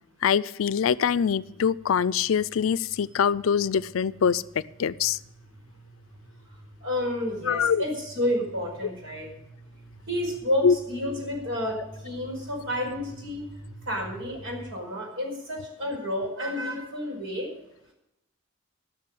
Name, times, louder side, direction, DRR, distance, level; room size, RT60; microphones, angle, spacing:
voice 1, 0.2-4.4 4.8-5.2 7.5-7.8 10.6-10.7, left 7 dB, 80° left, 18 dB, 0.4 m, -23 dB
sound 1, 1.2-14.6, right 1 dB, 50° right, 4.0 m, -49 dB
voice 2, 6.8-9.3 10.1-13.4 13.8-17.5, left 1 dB, 75° right, 1 dB, 5.1 m, -30 dB
13.5 x 6.4 x 8.6 m, 0.83 s
head